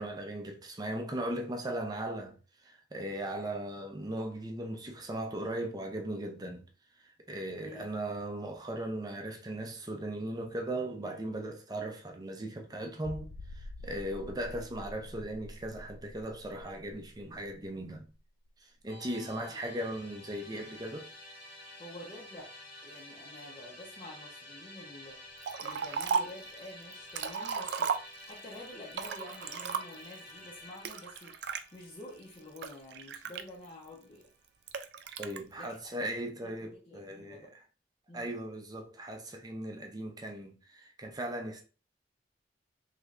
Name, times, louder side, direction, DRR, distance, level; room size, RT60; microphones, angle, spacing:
voice 1, 0.0-2.4 2.6-6.7 7.3-13.3 13.6-18.1 18.8-21.1 35.2-37.5 38.1-41.6, right 1 dB, 20° right, 0.6 m, -38 dB
sound 1, 13.0-18.5 18.8-18.9 19.4-19.5, left 1 dB, 55° left, 0.3 m, -47 dB
Musical instrument, 18.9-34.1, left 1 dB, 85° left, 1.5 m, -51 dB
voice 2, 21.8-22.6 22.8-34.3 35.6-37.5 38.1-38.3, left 1 dB, 30° left, 0.7 m, -49 dB
Liquid, 25.4-26.4 26.9-28.4 28.9-30.1 30.8-31.6 32.2-33.9 34.7-35.4, right 6 dB, 65° right, 0.4 m, -35 dB
3.2 x 3.1 x 2.5 m
head